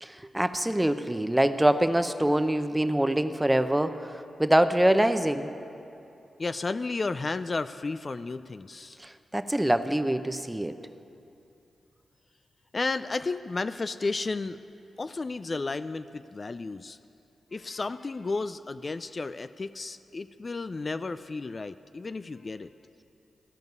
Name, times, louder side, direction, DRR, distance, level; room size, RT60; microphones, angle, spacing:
voice 1, 0.0-4.1 4.4-5.5 9.0-10.7, right 1 dB, 15° right, 10 dB, 0.7 m, -24 dB
voice 2, 6.4-9.0 12.7-14.6 15.0-17.0 17.5-22.7, left 3 dB, 45° left, 12 dB, 0.3 m, -33 dB
15.5 x 5.3 x 9.4 m, 2.7 s
supercardioid pair, 40°, 0 cm